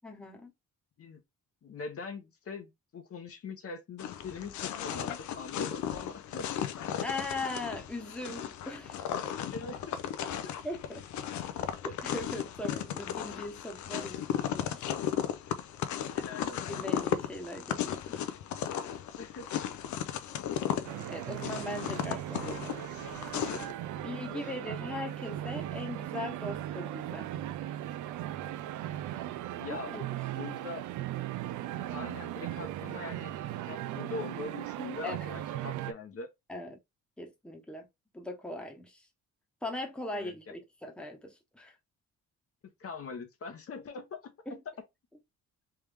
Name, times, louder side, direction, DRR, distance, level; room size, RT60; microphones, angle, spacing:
voice 1, 0.0-0.5 7.0-9.1 10.6-11.0 11.8-14.9 16.6-18.2 21.1-22.8 24.0-27.3 29.7-30.0 35.0-35.3 36.5-36.8 37.2-37.9 38.1-39.1 39.6-41.7 44.5-44.6, left 2 dB, 5° left, 1.1 m, -40 dB
voice 2, 1.6-6.5 9.3-10.4 16.1-16.6 19.2-19.6 23.9-24.5 29.6-30.0 30.3-30.9 31.9-33.3 33.7-36.3 40.1-40.5 42.8-44.6, left 4 dB, 50° left, 0.9 m, -42 dB
sound 1, 4.0-23.7, left 9 dB, 75° left, 0.6 m, -35 dB
sound 2, 20.8-35.9, right 13 dB, 75° right, 0.5 m, -38 dB
3.5 x 3.0 x 3.5 m
cardioid pair, 90°, 30 cm